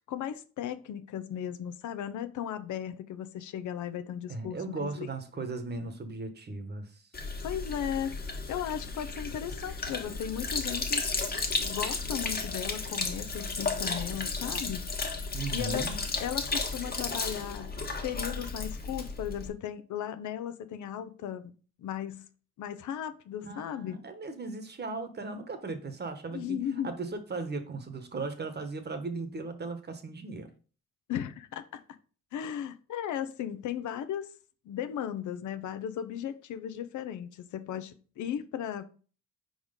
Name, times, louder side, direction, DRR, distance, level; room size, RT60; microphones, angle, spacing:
voice 1, 0.1-5.1 7.4-8.1 8.5-11.1 11.6-14.9 15.3-17.7 18.0-21.5 21.8-22.2 22.6-24.0 26.3-26.9 31.1-31.8 32.3-34.3 34.6-38.8, left 10 dB, 75° left, 0.7 m, -36 dB
voice 2, 4.3-7.0 15.3-16.0 23.4-30.5, right 3 dB, 35° right, 1.2 m, -37 dB
Sink (filling or washing), 7.1-19.5, left 4 dB, 30° left, 1.3 m, -34 dB
4.8 x 4.0 x 5.1 m
cardioid pair, 90°, 30 cm